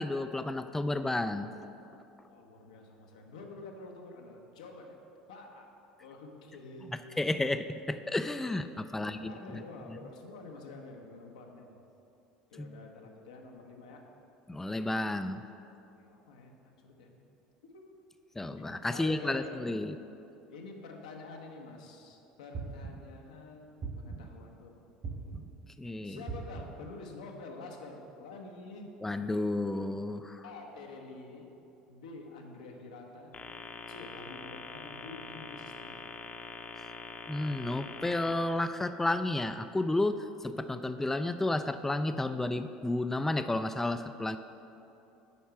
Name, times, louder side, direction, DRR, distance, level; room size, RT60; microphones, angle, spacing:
voice 1, 0.0-1.5 7.2-9.6 9.9-10.0 12.6-12.7 14.5-15.4 18.4-20.0 25.8-26.2 29.0-30.4 37.3-44.4, left 2 dB, 10° left, 9 dB, 0.3 m, -32 dB
voice 2, 2.2-5.0 5.3-5.7 6.0-7.2 8.9-11.7 12.5-14.0 15.9-17.1 17.6-17.9 18.6-19.9 20.5-24.8 26.0-29.0 30.4-31.5 31.9-33.4 33.9-36.0, left 3 dB, 85° left, 1 dB, 0.9 m, -48 dB
sound 1, 22.5-23.2 23.8-24.5 25.0-25.7 26.3-26.9, right 4 dB, 45° right, 1.6 m, -40 dB
sound 2, 33.3-38.3, left 4 dB, 35° left, 0.7 m, -44 dB
8.4 x 4.6 x 5.7 m, 2.9 s
hypercardioid pair, 75°, 4 cm